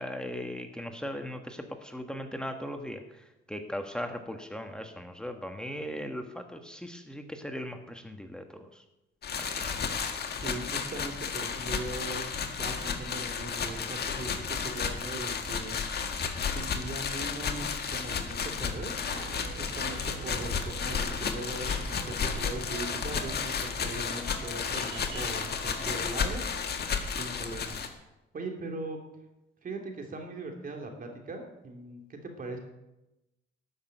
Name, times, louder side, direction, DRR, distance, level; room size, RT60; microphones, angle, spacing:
voice 1, 0.0-8.8 9.4-9.8 20.3-20.5, equal, 5° left, 5 dB, 1.4 m, -38 dB
sound 1, 9.2-27.9, left 6 dB, 55° left, 1.8 m, -33 dB
voice 2, 10.4-15.8 16.5-19.0 19.6-26.7 27.0-27.8 28.3-29.0 29.6-32.6, right 2 dB, 45° right, 2 dB, 3.2 m, -40 dB
sound 2, 19.1-26.0, right 5 dB, 75° right, 1.7 m, -46 dB
13.0 x 6.5 x 9.1 m, 0.95 s
cardioid pair, 90°, 20 cm